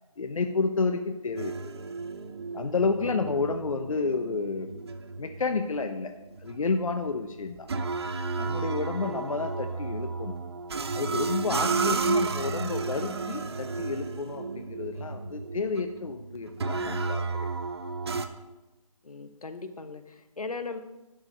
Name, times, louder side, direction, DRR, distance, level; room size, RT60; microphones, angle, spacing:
voice 1, 0.2-1.7 2.5-4.8 5.2-6.1 6.4-7.7 8.4-10.4 10.9-17.5, left 4 dB, 70° left, 6 dB, 0.8 m, -30 dB
sound 1, 1.4-18.3, right 4 dB, 45° right, 0.8 m, -33 dB
voice 2, 9.0-9.4 19.0-20.8, left 4 dB, 90° left, 9 dB, 1.1 m, -38 dB
11.0 x 4.9 x 6.4 m, 1.1 s
figure-of-eight pair, 160°, 18 cm